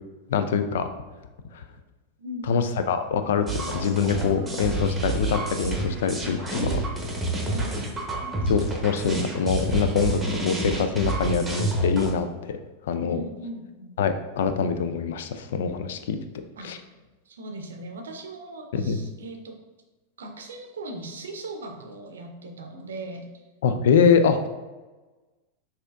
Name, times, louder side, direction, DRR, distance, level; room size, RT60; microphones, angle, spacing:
voice 1, 0.3-0.9 1.5-1.6 2.5-6.8 8.5-12.6 12.9-13.2 14.0-16.2 16.6-16.8 18.7-19.0 23.6-24.5, left 6 dB, 60° left, 9 dB, 0.3 m, -24 dB
voice 2, 2.2-2.9 7.4-7.9 13.0-14.0 16.6-16.7 17.3-19.6 20.2-23.3, right 1 dB, 65° right, 4 dB, 0.6 m, -38 dB
sound 1, 3.5-12.1, right 2 dB, 10° right, 0.9 m, -29 dB
6.0 x 2.8 x 2.5 m, 1.2 s
figure-of-eight pair, 90°, 0 cm